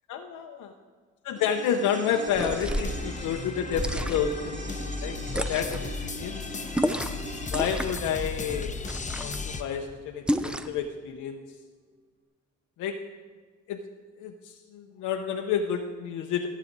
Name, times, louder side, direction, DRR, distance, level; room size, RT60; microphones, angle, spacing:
voice 1, 0.1-0.7 1.2-6.4 7.5-8.7 9.2-11.4 12.8-13.0 13.7-13.8 14.2-16.5, left 8 dB, 85° left, 3 dB, 0.8 m, -30 dB
sound 1, 1.4-9.8 10.1-10.2, right 2 dB, 40° right, 2.4 m, -42 dB
sound 2, 2.3-3.0 3.7-4.4 5.3-5.9 6.7-7.2 7.5-8.1 8.9-9.4 10.3-10.8, equal, 5° right, 0.5 m, -30 dB
sound 3, 2.6-9.6, left 4 dB, 25° left, 0.8 m, -35 dB
18.0 x 7.4 x 4.0 m, 1.6 s
cardioid pair, 90°, 30 cm